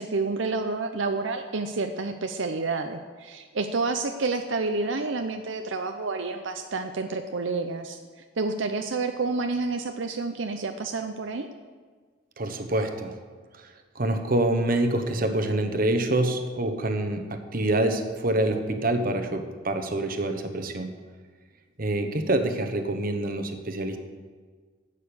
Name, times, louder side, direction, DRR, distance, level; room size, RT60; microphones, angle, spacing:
voice 1, 0.0-8.0 8.4-11.5, right 3 dB, 75° right, 6 dB, 0.7 m, -29 dB
voice 2, 12.4-13.1 13.6-13.7 13.9-20.9 21.8-24.0, right 1 dB, 45° right, 7 dB, 1.1 m, -26 dB
11.5 x 8.5 x 7.0 m, 1.5 s
head